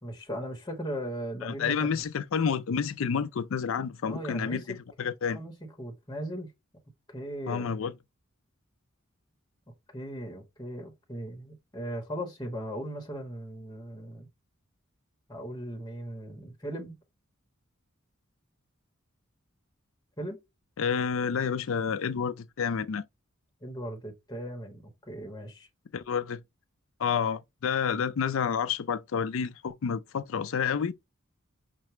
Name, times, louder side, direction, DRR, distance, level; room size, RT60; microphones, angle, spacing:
voice 1, 0.0-2.0 4.0-4.7 5.3-6.5 7.1-7.7 9.9-14.3 15.3-17.0 20.2-20.4 23.6-25.7, right 1 dB, 20° left, 0.9 m, -38 dB
voice 2, 1.4-5.4 7.5-7.9 20.8-23.0 25.9-26.4 27.0-30.9, left 6 dB, 70° left, 0.4 m, -29 dB
5.7 x 2.1 x 3.0 m
head